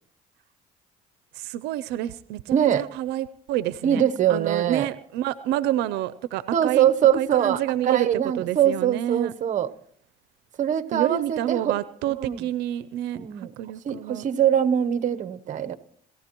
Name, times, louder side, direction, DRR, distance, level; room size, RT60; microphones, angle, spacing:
voice 1, 1.3-4.0 4.3-6.9 7.1-8.1 8.3-9.3 10.9-14.3, right 13 dB, 90° right, 15 dB, 0.5 m, -28 dB
voice 2, 2.5-2.8 3.8-4.9 6.5-7.6 7.9-9.7 10.6-11.7 12.2-12.4 13.1-13.5 13.8-15.8, right 9 dB, 45° right, 12 dB, 0.9 m, -22 dB
29.5 x 14.5 x 3.0 m, 0.63 s
cardioid pair, 110°, 17 cm